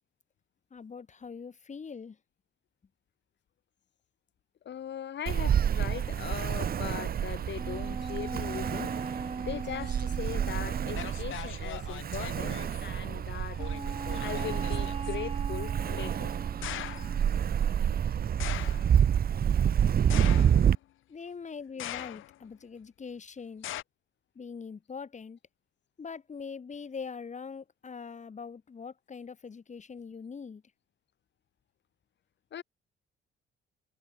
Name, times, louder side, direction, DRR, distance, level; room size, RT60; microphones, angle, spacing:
voice 1, 0.7-2.2 21.1-23.7 24.4-25.4 26.0-30.6, left 5 dB, 35° left, 3.9 m, -42 dB
voice 2, 4.7-8.9 9.4-13.6 14.2-16.3 32.5-32.6, left 9 dB, 65° left, 7.3 m, -39 dB
Ocean, 5.3-20.7, right 8 dB, 50° right, 1.0 m, -28 dB
sound 1, 7.6-11.2 13.6-17.5, right 4 dB, 30° right, 3.1 m, -40 dB
sound 2, 10.5-10.6 10.9-12.9 13.6-15.1 16.6-17.2 18.4-19.0 20.1-20.8 21.8-22.4 23.6-23.8, left 14 dB, 85° left, 3.3 m, -40 dB
cardioid pair, 90°, 20 cm